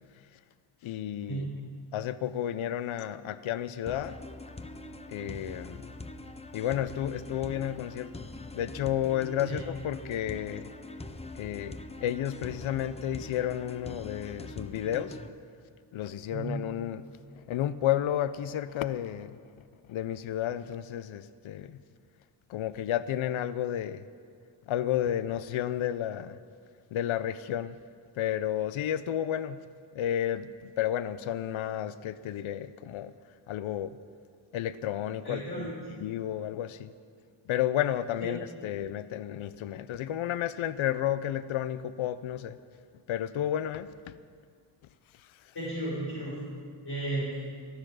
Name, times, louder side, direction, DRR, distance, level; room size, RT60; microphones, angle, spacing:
voice 1, 0.8-1.5 1.9-4.2 5.1-5.9 6.5-8.1 8.5-10.7 11.4-15.2 15.9-17.1 17.3-19.4 19.9-21.8 22.5-24.0 24.7-26.4 26.9-27.8 28.2-29.6 29.9-33.1 33.5-34.0 34.5-35.7 36.0-36.9 37.5-42.6 43.1-44.2 45.1-45.5, left 11 dB, 75° left, 0.6 m, -32 dB
sound 1, 3.9-15.3, left 2 dB, 15° left, 0.5 m, -43 dB
voice 2, 16.3-16.6 35.2-35.7 45.5-46.4 46.8-47.4, right 2 dB, 50° left, 5.0 m, -34 dB
15.0 x 14.5 x 6.2 m
wide cardioid pair, 160°, 49 cm